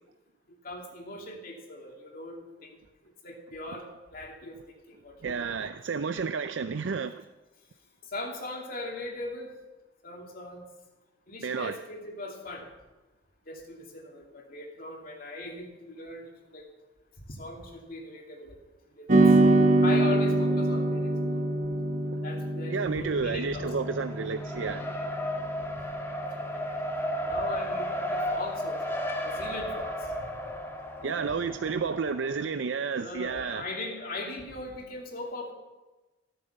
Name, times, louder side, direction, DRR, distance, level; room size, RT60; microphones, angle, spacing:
voice 1, 0.6-2.8 3.2-4.6 4.9-5.3 8.1-9.5 10.0-10.7 11.3-12.7 13.5-16.6 17.3-18.6 19.0-19.2 19.8-21.4 22.2-23.6 26.2-26.6 27.2-28.9 29.2-29.9 30.2-30.3 31.1-31.5 32.9-35.5, left 2 dB, 50° left, 2.7 m, -39 dB
voice 2, 5.2-7.2 11.4-11.8 22.7-25.0 31.0-33.6, right 5 dB, 80° right, 0.5 m, -31 dB
sound 1, 19.1-27.6, right 2 dB, 45° right, 1.4 m, -26 dB
Race car auto racing, 23.4-32.5, equal, 15° left, 1.7 m, -34 dB
15.5 x 9.1 x 6.8 m
head